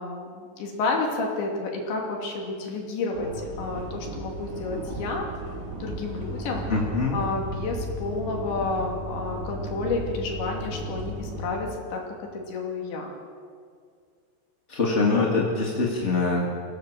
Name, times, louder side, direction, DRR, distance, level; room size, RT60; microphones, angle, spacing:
voice 1, 0.0-5.3 5.8-6.7 7.1-12.0 12.3-13.1, left 3 dB, 75° left, 0 dB, 4.9 m, -30 dB
sound 1, 3.1-11.4, right 1 dB, 75° right, 6.4 m, -35 dB
voice 2, 6.7-7.2 14.7-16.5, left 3 dB, 25° left, -2 dB, 1.5 m, -23 dB
24.0 x 17.0 x 7.6 m, 2.1 s
omnidirectional pair, 5.3 m